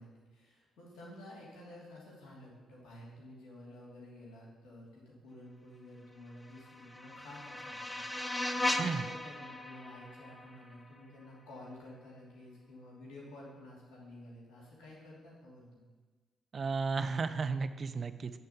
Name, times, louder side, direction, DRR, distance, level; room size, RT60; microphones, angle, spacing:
voice 1, 0.0-15.9, left 1 dB, 60° left, -5 dB, 2.8 m, -51 dB
sound 1, 6.4-11.4, left 1 dB, 15° left, 0.8 m, -38 dB
voice 2, 16.5-18.3, right 4 dB, 45° right, 10 dB, 0.5 m, -33 dB
8.5 x 4.0 x 7.0 m, 1.3 s
figure-of-eight pair, 40°, 0 cm